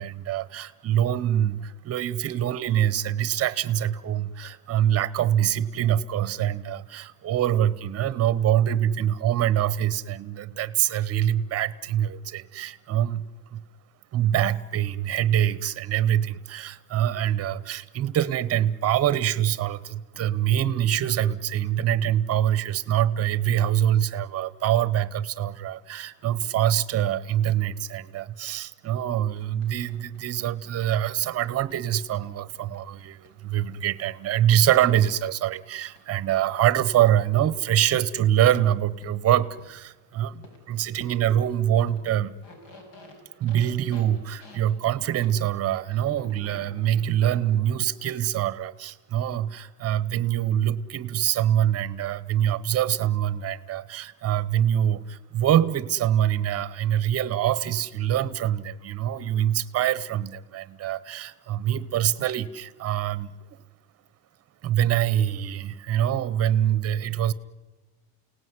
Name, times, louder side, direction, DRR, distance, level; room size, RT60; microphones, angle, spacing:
voice 1, 0.0-13.2 13.5-13.6 14.1-42.4 43.4-63.6 64.6-67.3, right 11 dB, 30° right, 17 dB, 0.9 m, -24 dB
Balloon rubbing, 29.4-33.7 34.6-34.7 35.9-36.0 36.7-36.8 37.5-37.6 39.0-39.1 39.6-39.7 40.4-40.6 41.0-41.1 41.9-42.0 42.3-45.3 46.0-48.1, left 2 dB, 70° left, 6.3 m, -49 dB
29.5 x 18.0 x 9.6 m, 1.2 s
cardioid pair, 170°, 50 cm